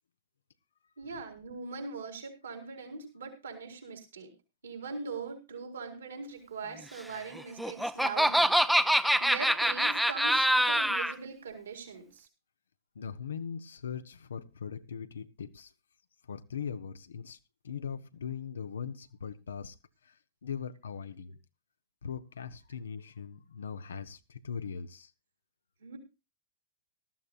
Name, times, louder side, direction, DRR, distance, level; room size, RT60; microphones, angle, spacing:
voice 1, 1.0-4.3 4.6-8.6 8.8-12.3 25.8-26.0, right 4 dB, 75° right, 4.3 m, -41 dB
Laughter, 7.4-11.1, equal, ahead, 0.7 m, -25 dB
voice 2, 12.9-15.7 16.3-17.4 17.6-19.7 20.4-21.4 22.0-25.1, left 7 dB, 70° left, 0.9 m, -40 dB
19.0 x 13.5 x 2.4 m
figure-of-eight pair, 100°, 0 cm